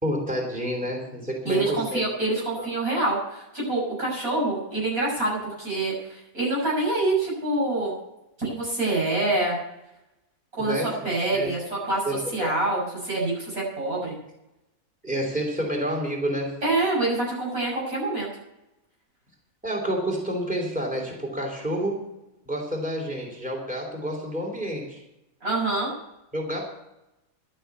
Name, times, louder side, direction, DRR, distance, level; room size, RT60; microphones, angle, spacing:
voice 1, 0.0-2.0 2.6-2.7 10.6-10.9 11.3-11.5 12.0-12.5 15.0-16.6 19.6-22.0 22.5-25.0 26.3-26.7, equal, 5° right, -2 dB, 3.0 m, -29 dB
voice 2, 1.5-7.9 8.4-9.6 10.6-14.2 16.6-18.3 25.4-25.9, right 2 dB, 80° right, -4 dB, 7.4 m, -26 dB
11.5 x 8.9 x 8.1 m, 0.91 s
omnidirectional pair, 1.5 m